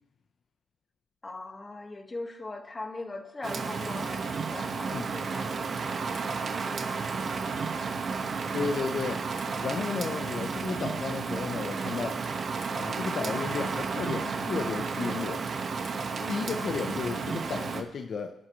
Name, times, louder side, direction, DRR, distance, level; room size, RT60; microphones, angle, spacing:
voice 1, 1.2-5.5 16.2-16.7, left 2 dB, 25° left, 5 dB, 1.9 m, -40 dB
Rain, 3.4-17.8, right 5 dB, 45° right, 1.7 m, -32 dB
voice 2, 8.5-9.3 9.6-12.2 12.8-15.5 16.3-18.3, left 5 dB, 50° left, 6 dB, 1.0 m, -33 dB
28.0 x 11.0 x 3.3 m, 0.90 s
cardioid pair, 90°, 0 cm